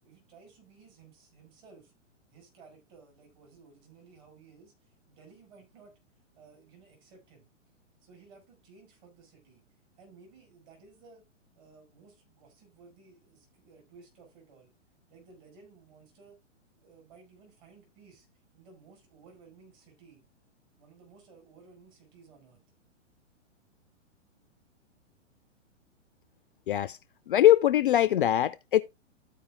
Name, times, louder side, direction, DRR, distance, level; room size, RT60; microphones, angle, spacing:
voice 1, 0.0-1.9 2.3-6.0 6.3-7.5 8.0-9.6 10.0-11.2 11.6-14.7 15.1-16.4 16.7-18.3 18.5-20.3 20.8-22.6, right 4 dB, 35° right, 5.3 m, -56 dB
voice 2, 26.7-27.0 27.3-28.8, left 12 dB, 45° left, 0.4 m, -22 dB
13.0 x 4.9 x 3.5 m
figure-of-eight pair, 115°, 37 cm